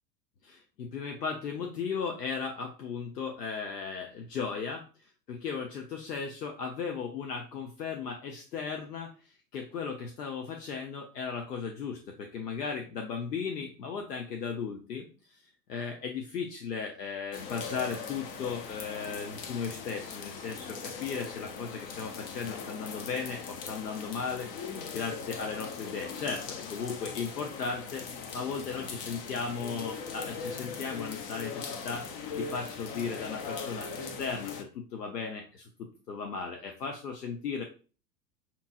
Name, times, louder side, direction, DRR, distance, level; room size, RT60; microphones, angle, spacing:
voice 1, 0.4-24.5 24.9-28.1 28.3-32.1 32.4-37.6, left 5 dB, 70° left, 3 dB, 0.8 m, -36 dB
sound 1, 17.3-34.6, left 5 dB, 35° left, 0.6 m, -40 dB
5.2 x 2.9 x 2.5 m, 0.36 s
figure-of-eight pair, 90°, 50 cm